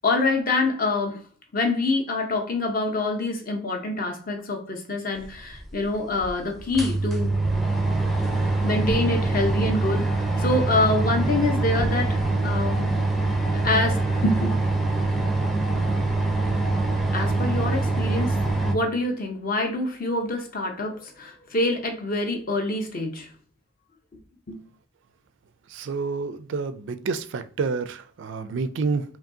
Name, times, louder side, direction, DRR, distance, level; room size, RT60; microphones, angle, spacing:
voice 1, 0.0-1.2 1.5-7.3 8.3-12.9 13.3-14.6 17.1-23.3 24.1-24.2 24.5-24.6, left 2 dB, 45° left, 0.8 m, -26 dB
sound 1, 5.5-5.6 6.2-6.3 6.6-18.7, right 2 dB, ahead, 0.5 m, -24 dB
voice 2, 25.7-29.0, right 4 dB, 60° right, 0.4 m, -28 dB
5.1 x 2.7 x 2.7 m
head